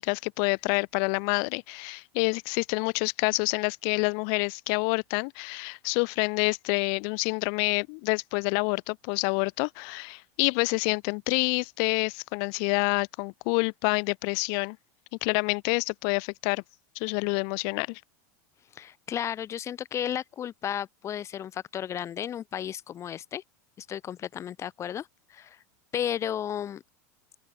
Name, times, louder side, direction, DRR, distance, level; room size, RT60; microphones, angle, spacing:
voice 1, 0.0-14.8 15.2-16.6 17.0-18.0, left 40 dB or more, 60° left, 2.2 m, -27 dB
voice 2, 18.7-23.4 23.8-25.6 25.9-26.8, left 10 dB, 35° left, 5.2 m, -33 dB
open air
hypercardioid pair, 110°, 9 cm